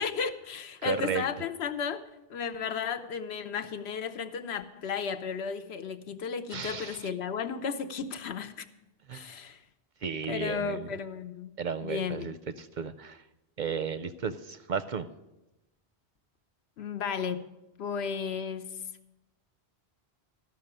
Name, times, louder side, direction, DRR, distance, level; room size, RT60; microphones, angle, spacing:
voice 1, 0.0-8.6 9.1-9.6 10.3-11.5 11.8-12.3 16.8-17.5 17.8-18.7, left 6 dB, 85° left, 9 dB, 1.0 m, -34 dB
voice 2, 0.8-1.3 6.5-7.0 9.1-9.3 10.0-10.9 11.6-13.2 13.6-15.1, right 6 dB, 55° right, 13 dB, 0.6 m, -34 dB
13.0 x 5.8 x 8.8 m, 0.97 s
omnidirectional pair, 1.1 m